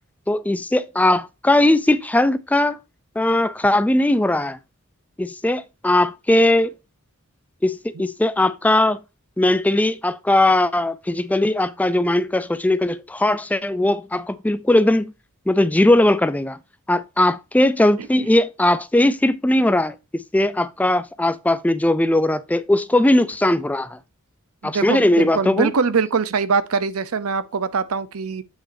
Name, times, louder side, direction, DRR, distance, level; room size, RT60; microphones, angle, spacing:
voice 1, 0.3-2.8 3.2-4.6 5.2-6.7 7.6-9.0 9.4-15.1 15.5-16.6 16.9-24.0 24.6-25.7, left 1 dB, 5° left, 0.3 m, -19 dB
voice 2, 24.6-28.4, right 5 dB, 85° right, 0.7 m, -23 dB
8.3 x 5.9 x 2.6 m
head